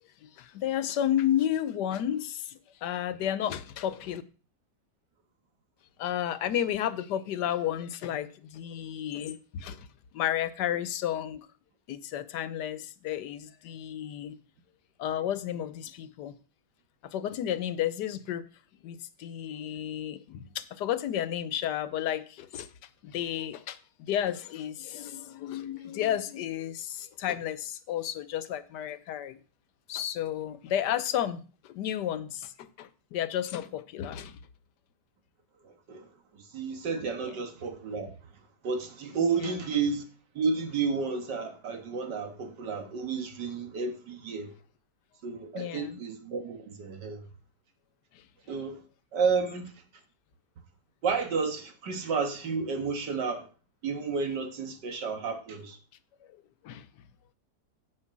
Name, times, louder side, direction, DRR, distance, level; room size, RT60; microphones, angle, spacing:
voice 1, 0.2-4.2 6.0-9.9 10.1-11.5 11.9-14.4 15.0-16.3 17.0-18.4 18.8-22.7 23.0-29.4 29.9-34.4 37.2-37.4 39.4-39.6 45.5-46.0 48.1-48.2 56.6-56.9, left 11 dB, 80° left, 1.3 m, -32 dB
voice 2, 35.6-36.1 36.5-38.1 38.6-40.0 40.4-44.5 45.2-47.3 48.5-48.8 49.1-49.7 51.0-53.5 53.8-55.8, right 5 dB, 85° right, 2.1 m, -31 dB
9.7 x 5.2 x 7.3 m
omnidirectional pair, 1.8 m